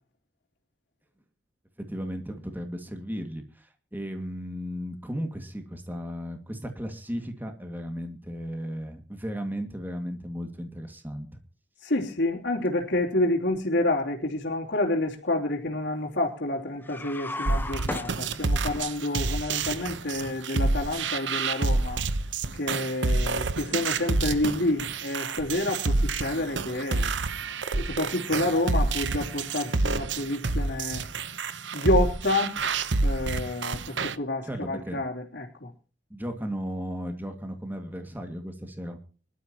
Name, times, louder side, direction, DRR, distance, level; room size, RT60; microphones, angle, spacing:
voice 1, 1.8-11.3 34.4-35.0 36.1-39.0, equal, 10° right, 5 dB, 2.1 m, -35 dB
voice 2, 11.8-22.0 22.5-27.1 27.7-31.0 31.7-32.6 33.0-35.7, left 1 dB, 70° left, -5 dB, 3.3 m, -28 dB
sound 1, 16.8-18.8, left 2 dB, 10° left, 0.9 m, -35 dB
sound 2, 17.5-34.2, right 3 dB, 80° right, 0.9 m, -28 dB
25.0 x 12.5 x 3.0 m, 0.37 s
head